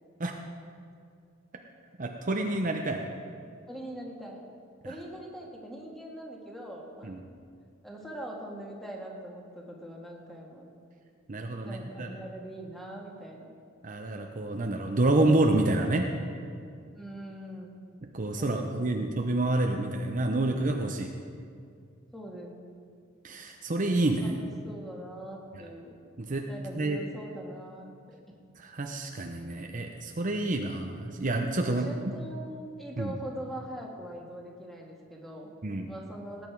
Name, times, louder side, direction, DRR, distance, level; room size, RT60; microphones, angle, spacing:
voice 1, 2.0-3.0 7.1-7.2 11.3-12.1 13.8-16.1 18.1-21.1 23.2-24.3 26.2-26.5 26.8-27.0 28.6-31.9 33.0-33.1 35.6-35.9, right 2 dB, 40° right, 3 dB, 0.7 m, -28 dB
voice 2, 3.7-4.4 4.8-7.4 7.8-10.7 11.6-13.5 17.0-17.8 18.4-19.1 22.1-22.6 24.2-26.0 26.5-28.2 31.6-35.6 35.9-36.5, right 1 dB, ahead, -1 dB, 1.8 m, -42 dB
18.5 x 9.0 x 4.7 m, 2.3 s
head